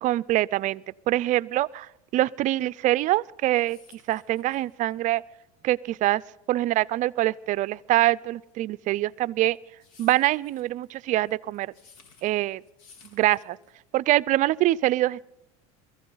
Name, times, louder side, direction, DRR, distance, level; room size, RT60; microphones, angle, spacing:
voice 1, 0.0-3.8 4.1-5.2 5.6-6.2 6.5-9.6 10.0-11.7 12.2-12.6 13.1-13.6 13.9-15.2, right 16 dB, 45° right, 20 dB, 0.5 m, -24 dB
sound 1, 3.2-14.0, left 5 dB, 85° left, 3.8 m, -57 dB
23.0 x 14.5 x 4.0 m, 0.90 s
supercardioid pair, 110°, 18 cm